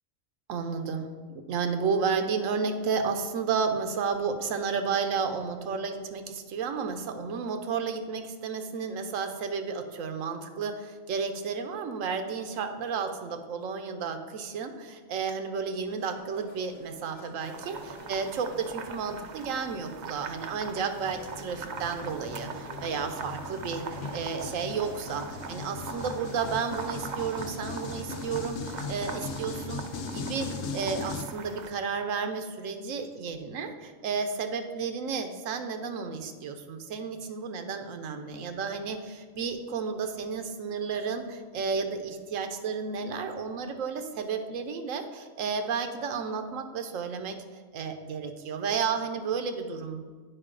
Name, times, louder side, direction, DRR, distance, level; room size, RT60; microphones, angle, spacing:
voice 1, 0.5-47.4 47.7-50.0, right 5 dB, 80° right, 7 dB, 1.1 m, -32 dB
sound 1, 15.8-28.4, left 3 dB, 40° left, 0.8 m, -49 dB
sound 2, 17.4-31.7, right 5 dB, 65° right, 0.4 m, -42 dB
sound 3, 21.0-31.2, left 4 dB, 80° left, 1.0 m, -39 dB
8.8 x 4.7 x 3.8 m, 1.5 s
omnidirectional pair, 1.3 m